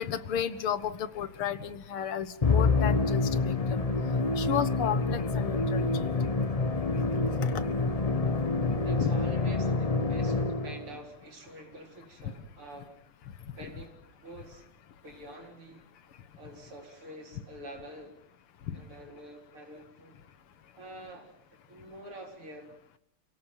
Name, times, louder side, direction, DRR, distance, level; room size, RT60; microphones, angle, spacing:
voice 1, 0.0-3.9 4.4-6.1 7.4-7.5 9.0-9.1 18.7-18.8, left 9 dB, 85° left, 13 dB, 2.3 m, -33 dB
Musical instrument, 2.4-10.9, left 3 dB, 40° left, 0.5 m, -27 dB
voice 2, 8.8-13.0 13.6-14.7 15.0-15.9 16.4-18.2 18.7-20.2 20.8-22.7, right 1 dB, 85° right, 3 dB, 5.2 m, -47 dB
28.5 x 17.5 x 9.0 m, 0.76 s
omnidirectional pair, 2.4 m